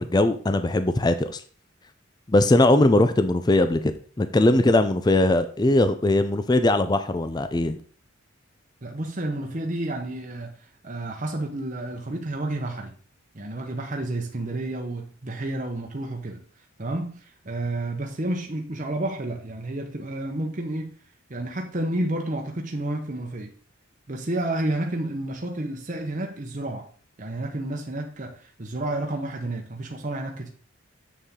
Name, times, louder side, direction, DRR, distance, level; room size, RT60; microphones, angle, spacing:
voice 1, 0.0-1.4 2.3-3.9 4.2-7.8, left 2 dB, 20° left, 0.4 m, -20 dB
voice 2, 8.8-12.9 13.3-16.4 16.8-20.9 21.3-23.5 24.1-26.9 27.2-30.5, right 1 dB, 35° right, 0.9 m, -30 dB
7.3 x 6.9 x 3.7 m
head